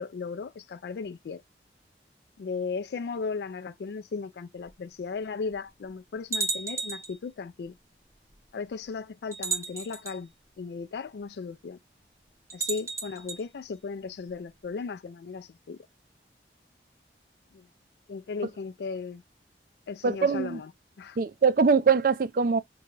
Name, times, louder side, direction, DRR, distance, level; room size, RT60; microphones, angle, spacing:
voice 1, 0.0-1.4 2.4-7.7 8.5-10.3 10.6-11.8 12.5-15.8 17.5-17.7 18.1-19.2 19.9-20.7 21.0-21.2, left 4 dB, 70° left, 0.3 m, -36 dB
sound 1, 4.7-4.8 5.5-5.6 6.3-7.2 8.3-8.4 9.3-10.2 12.5-13.4, right 4 dB, 15° right, 0.7 m, -33 dB
voice 2, 20.0-20.6 21.2-22.6, right 5 dB, 50° right, 0.4 m, -23 dB
3.8 x 2.2 x 3.1 m
head